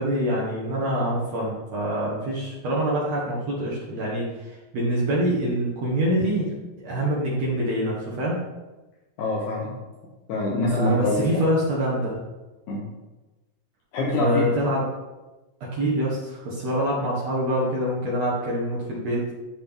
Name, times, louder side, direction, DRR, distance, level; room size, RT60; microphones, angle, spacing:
voice 1, 0.0-6.5 6.8-8.4 10.7-12.2 14.1-14.8 15.7-19.3, right 1 dB, 60° right, -5 dB, 2.3 m, -25 dB
voice 2, 9.2-9.8 10.3-11.4 12.7-12.8 13.9-14.4, left 2 dB, 75° left, -4 dB, 2.4 m, -25 dB
11.5 x 3.9 x 3.6 m, 1.1 s
omnidirectional pair, 3.7 m